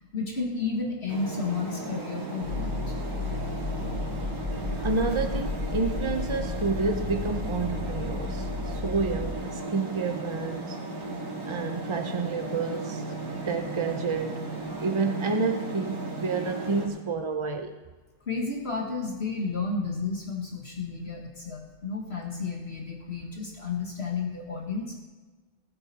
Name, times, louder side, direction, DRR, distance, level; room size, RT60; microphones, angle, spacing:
voice 1, 0.1-2.9 18.3-25.0, left 4 dB, 45° left, 0 dB, 1.7 m, -32 dB
sound 1, 1.1-16.9, right 2 dB, 85° right, 2.5 m, -36 dB
sound 2, 2.4-9.3, left 3 dB, 30° left, 5.3 m, -33 dB
voice 2, 4.8-10.8 11.4-13.0 13.5-14.5 14.8-17.8, right 4 dB, 45° right, 5 dB, 0.4 m, -29 dB
19.5 x 8.7 x 4.1 m, 1.3 s
omnidirectional pair, 1.5 m